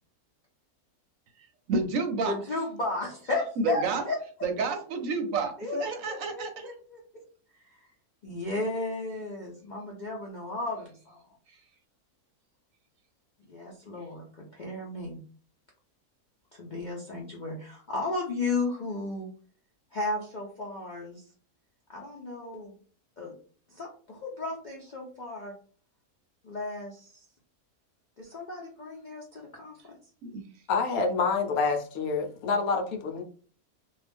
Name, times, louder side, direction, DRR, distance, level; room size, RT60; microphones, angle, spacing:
voice 1, 1.7-2.3 3.6-4.0 4.4-6.7 30.2-30.4, right 4 dB, 70° right, 6 dB, 0.9 m, -30 dB
voice 2, 2.2-4.2 5.6-7.2 7.5-7.9 8.2-11.2 13.5-15.2 16.5-19.3 19.9-21.2 21.9-22.7 23.2-23.3 23.7-25.5 26.4-27.2 28.2-30.0, left 2 dB, 55° left, -2 dB, 0.5 m, -34 dB
voice 3, 30.7-33.2, left 4 dB, 75° left, 4 dB, 1.1 m, -27 dB
2.6 x 2.3 x 3.4 m, 0.42 s
omnidirectional pair, 1.6 m